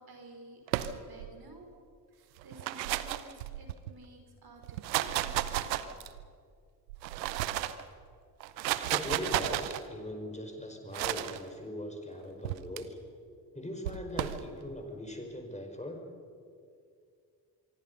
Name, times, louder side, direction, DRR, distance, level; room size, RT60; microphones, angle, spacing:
voice 1, 0.0-1.7 2.1-5.9, right 2 dB, 50° right, 3 dB, 5.3 m, -53 dB
sound 1, 0.7-1.3 2.4-3.9 4.6-6.3 6.9-7.8 8.4-9.8 10.9-11.4 12.4-12.8 13.8-14.4, right 14 dB, 90° right, 0.8 m, -33 dB
voice 2, 8.9-13.0 13.5-16.0, left 1 dB, 15° left, 3 dB, 5.1 m, -40 dB
24.5 x 24.0 x 5.5 m, 2.3 s
hypercardioid pair, 45°, 49 cm